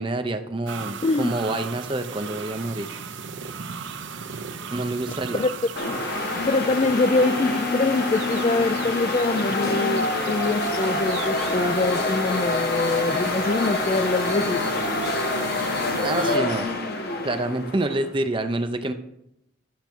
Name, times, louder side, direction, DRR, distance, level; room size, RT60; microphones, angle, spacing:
voice 1, 0.0-2.9 4.7-5.4 16.0-16.7 17.2-18.9, right 2 dB, 25° right, 8 dB, 0.6 m, -27 dB
sound 1, 0.7-16.4, right 5 dB, 60° right, 0.7 m, -36 dB
sound 2, 5.8-18.1, left 2 dB, 50° left, 1.1 m, -26 dB
voice 2, 6.4-14.6, left 3 dB, 30° left, 15 dB, 0.3 m, -24 dB
12.0 x 6.7 x 4.5 m, 0.81 s
head